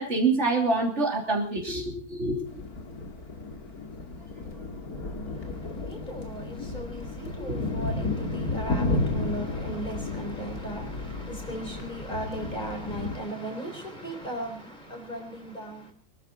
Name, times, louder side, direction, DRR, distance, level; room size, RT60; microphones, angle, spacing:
voice 1, 0.0-2.5 7.5-7.6, right 3 dB, 50° right, 3.5 m, -26 dB
sound 1, 2.5-13.2, left 2 dB, 85° left, 2.7 m, -33 dB
voice 2, 5.9-15.9, right 1 dB, 30° left, 3.9 m, -37 dB
24.0 x 13.0 x 4.1 m
omnidirectional pair, 1.5 m